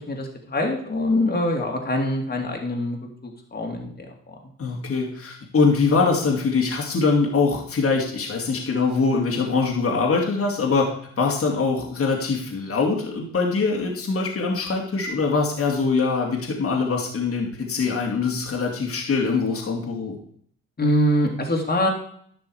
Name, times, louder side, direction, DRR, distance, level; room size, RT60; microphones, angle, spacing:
voice 1, 0.1-3.0 3.2-3.9 20.8-21.9, left 1 dB, 30° left, 1 dB, 2.9 m, -23 dB
voice 2, 4.6-20.2, left 4 dB, 50° left, -1 dB, 2.8 m, -23 dB
11.5 x 6.1 x 4.9 m, 0.63 s
supercardioid pair, 70°, 30 cm